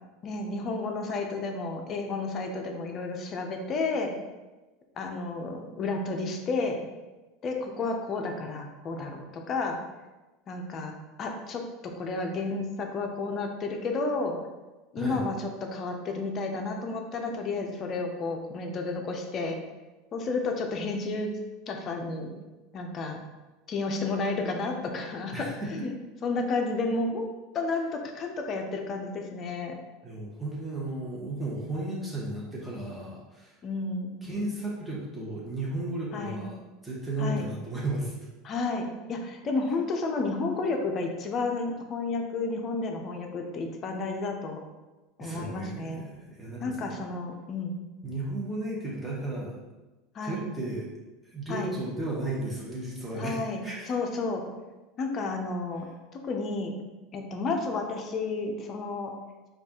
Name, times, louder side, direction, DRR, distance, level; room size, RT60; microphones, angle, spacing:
voice 1, 0.2-4.1 5.0-6.8 7.4-9.8 10.5-10.9 11.2-14.4 14.9-19.6 20.1-21.4 21.7-22.3 22.7-23.2 23.7-25.9 26.2-27.3 27.5-29.8 33.6-34.2 36.1-36.4 37.2-37.5 38.4-44.6 45.2-46.0 46.6-47.8 50.1-50.4 51.5-51.7 53.2-54.4 55.0-55.9 56.2-56.7 57.1-59.1, left 3 dB, 40° left, 3 dB, 0.5 m, -31 dB
voice 2, 25.3-25.9 30.0-33.5 34.2-36.6 36.8-38.1 45.2-46.9 48.0-49.6 50.2-50.9 51.2-53.9, right 1 dB, 5° right, -6 dB, 1.0 m, -34 dB
4.9 x 2.4 x 2.9 m, 1.1 s
supercardioid pair, 115°, 0 cm